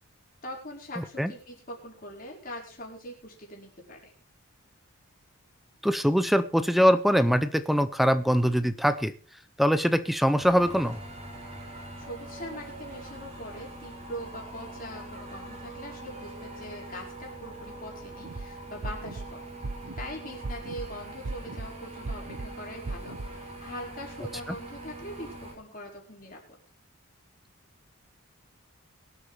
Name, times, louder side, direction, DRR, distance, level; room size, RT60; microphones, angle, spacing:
voice 1, 0.4-4.1 11.6-19.4 20.0-26.4, equal, 40° left, -1 dB, 4.7 m, -42 dB
voice 2, 5.8-9.1 9.6-11.0, equal, ahead, 12 dB, 0.5 m, -23 dB
sound 1, 10.4-25.5, right 2 dB, 30° right, 3.5 m, -43 dB
sound 2, 18.2-18.4 18.8-19.3 19.6-20.1 20.4-20.9 21.2-21.7 22.0-22.5 22.9-23.3, right 3 dB, 80° right, 0.9 m, -35 dB
23.0 x 8.5 x 3.3 m, 0.37 s
head